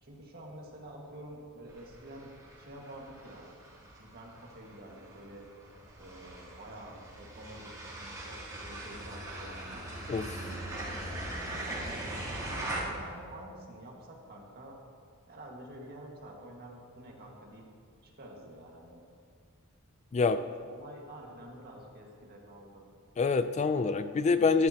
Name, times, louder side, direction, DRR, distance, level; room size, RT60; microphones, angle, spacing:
voice 1, 0.0-2.3 2.6-3.4 4.0-5.4 6.0-9.9 10.3-10.7 11.6-14.8 15.3-17.7 18.0-19.0 20.2-22.8, right 1 dB, 45° right, -1 dB, 1.7 m, -48 dB
sound 1, 1.7-12.8, right 1 dB, 15° right, 3.1 m, -41 dB
voice 2, 23.2-24.7, left 4 dB, 30° left, 11 dB, 0.3 m, -26 dB
12.5 x 12.0 x 2.9 m, 2.1 s
head